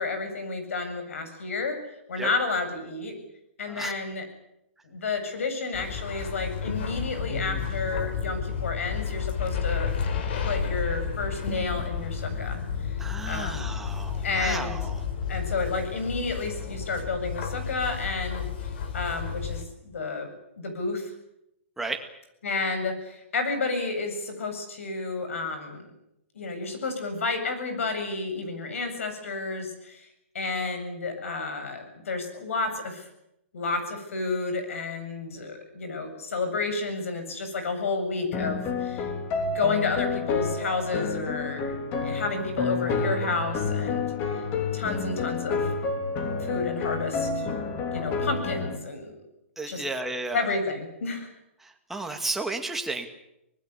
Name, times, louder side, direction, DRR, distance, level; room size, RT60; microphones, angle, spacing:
voice 1, 0.0-1.8 2.1-3.1 3.6-4.2 4.9-9.9 10.4-12.6 12.9-13.8 14.2-14.9 15.3-18.5 18.9-20.3 20.6-21.1 22.4-25.8 26.3-30.1 30.3-33.1 33.5-39.1 39.5-41.7 42.0-44.4 44.7-45.7 46.4-47.3 47.9-49.1 49.7-49.8 50.3-51.3, left 3 dB, 80° left, 8 dB, 7.9 m, -31 dB
sound 1, 5.7-19.6, left 6 dB, 50° left, 3.9 m, -31 dB
voice 2, 13.0-15.0 21.8-22.0 49.6-50.5 51.9-53.1, right 3 dB, 5° right, 4 dB, 2.2 m, -33 dB
sound 2, 38.3-48.8, left 4 dB, 25° left, 3.1 m, -29 dB
24.5 x 20.0 x 8.3 m, 0.83 s
hypercardioid pair, 160°, 7 cm